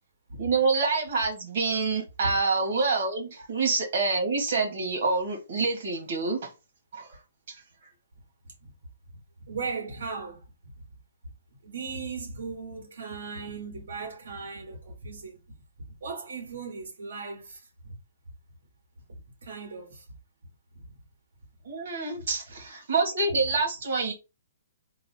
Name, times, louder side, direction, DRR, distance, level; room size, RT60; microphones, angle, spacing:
voice 1, 0.4-6.5 6.9-7.2 7.5-7.6 21.6-24.1, right 4 dB, 50° right, 2.1 m, -27 dB
voice 2, 9.5-10.4 11.6-15.4 16.0-18.0 19.1-20.0 20.7-20.8 22.1-22.2 23.4-23.5, right 4 dB, 75° right, 2.4 m, -38 dB
3.9 x 2.4 x 4.5 m
hypercardioid pair, 175°, 0 cm